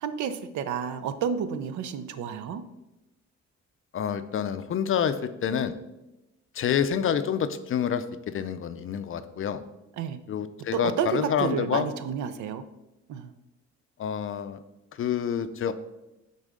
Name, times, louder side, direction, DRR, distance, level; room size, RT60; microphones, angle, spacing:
voice 1, 0.0-2.6 10.0-10.2 10.7-12.6 13.1-13.3, right 7 dB, 75° right, 12 dB, 0.5 m, -30 dB
voice 2, 3.9-5.7 6.6-9.6 10.3-11.9 14.0-14.6 15.0-15.7, left 8 dB, 45° left, 12 dB, 0.4 m, -28 dB
6.3 x 4.1 x 3.7 m, 0.97 s
cardioid pair, 90°, 30 cm